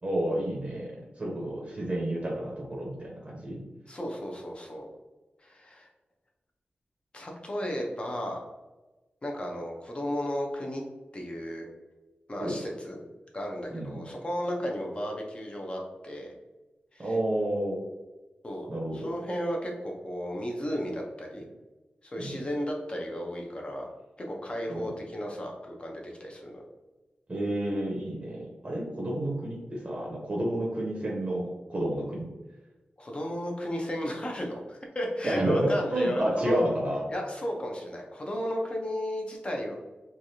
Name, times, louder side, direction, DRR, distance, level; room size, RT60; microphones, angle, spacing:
voice 1, 0.0-3.7 12.4-12.6 13.7-14.0 17.0-17.8 18.7-19.1 22.2-22.4 24.7-24.9 27.3-32.3 35.2-37.1, right 1 dB, 35° right, -3 dB, 0.7 m, -30 dB
voice 2, 3.9-4.9 5.4-5.9 7.1-8.4 9.2-10.8 11.1-11.7 12.3-13.0 13.3-16.3 16.9-17.2 18.4-21.5 22.0-23.9 24.2-26.6 33.0-36.7 37.1-39.7, equal, 30° left, 0 dB, 0.7 m, -34 dB
3.2 x 2.4 x 2.7 m, 1.1 s
wide cardioid pair, 100°, 3 cm